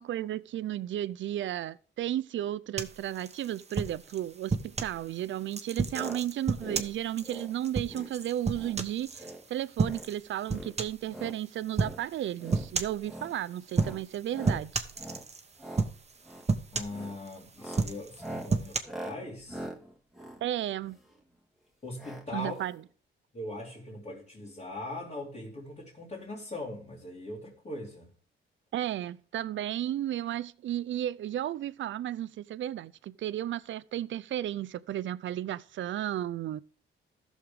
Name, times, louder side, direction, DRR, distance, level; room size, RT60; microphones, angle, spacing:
voice 1, 0.0-14.8 20.4-21.0 22.3-22.8 28.7-36.6, right 12 dB, 70° right, 0.5 m, -34 dB
sound 1, 2.8-5.0 5.5-9.3 9.8-10.2 10.5-11.1 11.8-12.0 12.5-13.0 13.7-14.2 14.4-15.4 15.8-16.2 16.5-17.3 17.7-18.8, right 4 dB, 30° right, 1.1 m, -31 dB
sound 2, 5.9-6.2 6.5-6.9 7.2-7.5 7.9-8.1 8.5-8.8 9.1-9.4 9.7-10.1 10.5-11.4 11.7-12.0 12.4-12.7 13.0-13.3 13.7-14.0 14.3-14.6 14.9-15.3 15.5-15.9 16.2-16.5 16.9-17.2 17.5-21.2 22.0-22.2 22.5-22.6 22.8-22.9, right 1 dB, ahead, 1.9 m, -43 dB
voice 2, 16.7-19.7 21.8-22.6 23.3-28.1, left 2 dB, 35° left, 2.8 m, -40 dB
15.0 x 6.5 x 3.5 m
cardioid pair, 80°, 21 cm